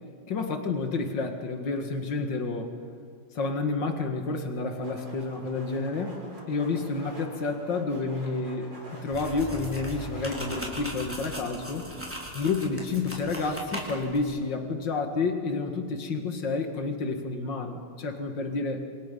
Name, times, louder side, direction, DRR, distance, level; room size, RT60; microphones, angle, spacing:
voice 1, 0.3-2.7 3.3-11.8 12.3-18.9, left 3 dB, 80° left, 5 dB, 2.6 m, -30 dB
sound 1, 4.7-10.8, right 1 dB, 75° right, 4.9 m, -45 dB
sound 2, 9.1-14.2, equal, 5° right, 3.9 m, -39 dB
27.5 x 27.5 x 5.4 m, 2.3 s
omnidirectional pair, 1.9 m